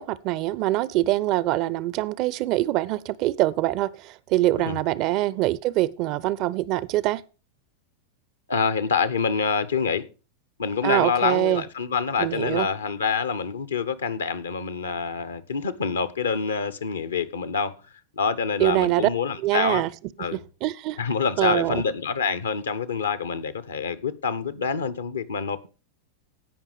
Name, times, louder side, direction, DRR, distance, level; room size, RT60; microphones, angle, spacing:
voice 1, 0.0-7.2 10.8-11.6 12.2-12.7 18.6-19.1 19.4-19.9 20.3-21.0 21.4-21.8, right 16 dB, 40° right, 0.5 m, -24 dB
voice 2, 8.5-10.1 10.6-17.7 18.2-19.9 20.2-20.4 21.0-25.7, left 5 dB, 70° left, 1.0 m, -26 dB
16.5 x 5.6 x 5.0 m
figure-of-eight pair, 90°, 0 cm